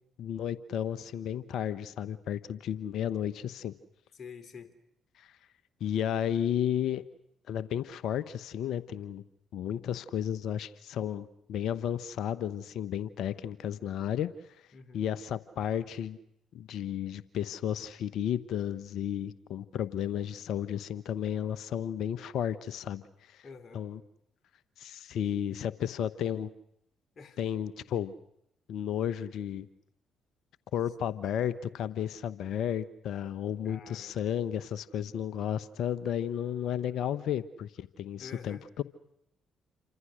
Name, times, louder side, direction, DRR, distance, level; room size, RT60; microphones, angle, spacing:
voice 1, 0.2-3.7 5.2-5.3 5.8-7.0 7.5-9.2 9.5-14.3 14.9-16.2 16.5-23.0 23.3-23.4 23.7-24.0 24.8-26.5 27.4-28.1 28.7-29.7 30.7-38.8, left 9 dB, 65° left, 16 dB, 1.1 m, -33 dB
voice 2, 4.1-4.7 14.7-15.0 23.4-23.9 27.1-27.4 30.9-31.0 33.6-34.2 38.2-38.6, left 5 dB, 50° left, 8 dB, 3.4 m, -48 dB
29.0 x 25.5 x 6.5 m, 0.77 s
hypercardioid pair, 45°, 0 cm